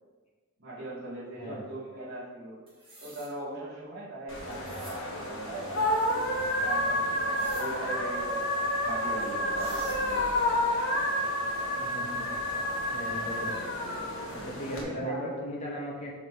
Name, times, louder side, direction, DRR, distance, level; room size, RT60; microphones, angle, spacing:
voice 1, 0.6-2.6 3.0-8.4 8.8-10.6 14.7-15.3, right 1 dB, 50° right, -8 dB, 1.7 m, -40 dB
voice 2, 1.4-1.7 11.8-12.3 12.9-13.5 14.3-16.1, equal, 30° left, -3 dB, 1.1 m, -37 dB
sound 1, 2.7-3.3 4.5-5.0 7.3-7.7 9.2-9.3 9.5-10.0, right 2 dB, 25° right, 1.6 m, -49 dB
sound 2, 4.3-14.8, left 1 dB, 60° left, 1.1 m, -30 dB
5.7 x 3.6 x 4.6 m, 1.4 s
head